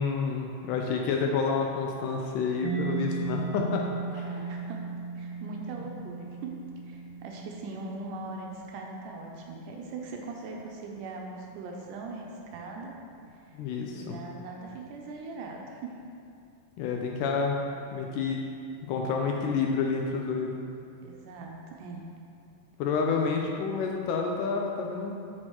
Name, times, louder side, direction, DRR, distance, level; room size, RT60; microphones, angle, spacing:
voice 1, 0.0-3.8 4.1-4.3 13.5-14.2 16.8-18.4 18.9-20.6 22.8-25.2, left 5 dB, 80° left, 1 dB, 1.9 m, -29 dB
Mallet percussion, 2.6-10.1, right 6 dB, 60° right, 1.4 m, -37 dB
voice 2, 4.0-4.8 5.2-6.6 6.8-13.0 13.4-13.5 13.9-16.0 21.0-22.0, right 3 dB, 80° right, 0 dB, 2.0 m, -40 dB
8.7 x 6.3 x 3.0 m, 2.5 s
omnidirectional pair, 4.0 m